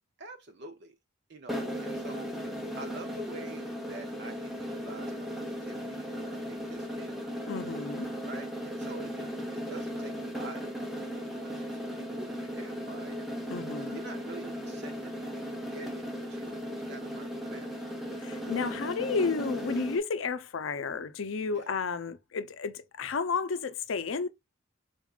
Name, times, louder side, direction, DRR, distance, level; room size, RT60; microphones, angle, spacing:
voice 1, 0.2-0.9 1.3-2.3 2.8-7.3 8.3-10.6 11.1-13.3 13.9-17.9 21.5-21.7, right 3 dB, 55° right, 0.6 m, -47 dB
sound 1, 1.5-20.0, equal, ahead, 0.7 m, -37 dB
voice 2, 7.5-8.1 13.5-14.0 18.2-24.3, left 4 dB, 80° left, 0.5 m, -32 dB
4.0 x 3.6 x 2.4 m
head